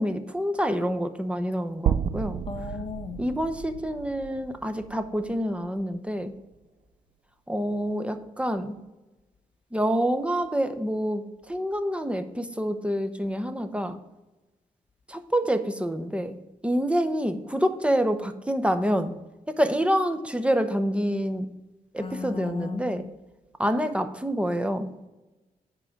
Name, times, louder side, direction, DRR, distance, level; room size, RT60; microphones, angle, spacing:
voice 1, 0.0-2.4 3.2-6.3 7.5-8.8 9.7-14.0 15.1-16.4 16.6-19.2 19.5-21.5 21.9-23.1 23.6-24.9, equal, 10° right, 0.8 m, -27 dB
sound 1, 1.9-6.1, right 9 dB, 70° right, 0.4 m, -32 dB
voice 2, 2.5-3.2 22.0-23.1, left 5 dB, 40° left, 0.5 m, -35 dB
9.7 x 3.8 x 7.1 m
cardioid pair, 80°, 14 cm